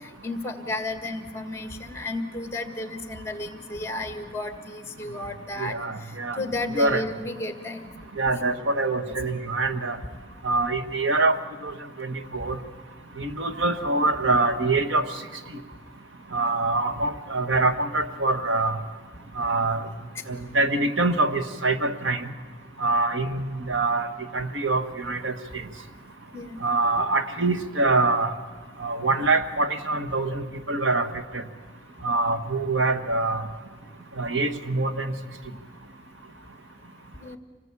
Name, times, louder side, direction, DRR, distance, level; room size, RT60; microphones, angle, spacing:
voice 1, 0.2-5.7 6.4-7.8 26.3-26.6 37.2-37.4, left 2 dB, 15° left, 7 dB, 1.7 m, -32 dB
voice 2, 5.6-6.4 6.7-7.0 8.2-10.0 10.4-11.4 11.6-11.7 12.0-12.6 13.2-15.1 16.3-18.8 19.4-19.8 20.3-22.3 22.8-24.1 24.3-25.4 26.6-28.3 28.8-31.1 31.3-31.4 32.0-33.4 34.2-35.1, right 2 dB, 70° right, 9 dB, 1.2 m, -24 dB
26.5 x 19.0 x 8.4 m, 1.5 s
head